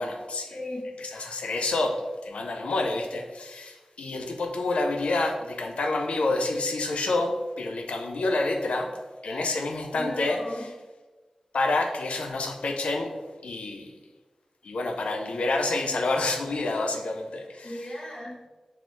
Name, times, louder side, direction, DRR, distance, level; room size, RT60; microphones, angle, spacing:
voice 1, 0.0-0.5 1.0-8.9 9.2-10.7 11.5-13.1 13.4-14.0 14.6-17.7, left 2 dB, 85° left, 3 dB, 0.4 m, -28 dB
voice 2, 0.5-0.9 9.2-9.5 9.9-10.7 17.6-18.4, left 1 dB, 45° left, -3 dB, 1.0 m, -37 dB
3.8 x 2.5 x 2.9 m, 1.3 s
cardioid pair, 40°, 2 cm